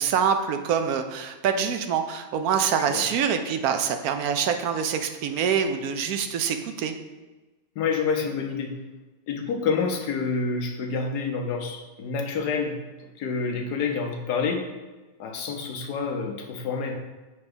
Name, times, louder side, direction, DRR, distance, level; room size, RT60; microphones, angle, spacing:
voice 1, 0.0-6.9, right 7 dB, 70° right, 7 dB, 1.0 m, -25 dB
voice 2, 7.8-8.7 9.3-12.7 13.0-14.6 15.2-17.0, left 5 dB, 75° left, 3 dB, 1.3 m, -28 dB
6.9 x 3.3 x 5.2 m, 1.2 s
omnidirectional pair, 1.8 m